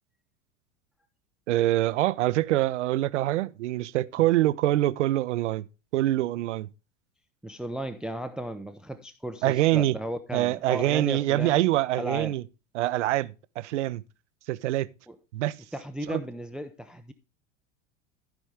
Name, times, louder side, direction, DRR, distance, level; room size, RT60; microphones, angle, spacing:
voice 1, 1.5-5.7 5.9-6.7 9.4-10.0 10.3-12.4 12.7-14.0 14.5-14.9 15.3-15.6 16.1-16.2, right 15 dB, 65° right, 0.6 m, -25 dB
voice 2, 7.4-11.7 12.0-12.4 15.1-15.2 15.7-17.1, right 1 dB, ahead, 0.5 m, -35 dB
15.0 x 5.2 x 3.4 m
figure-of-eight pair, 80°, 38 cm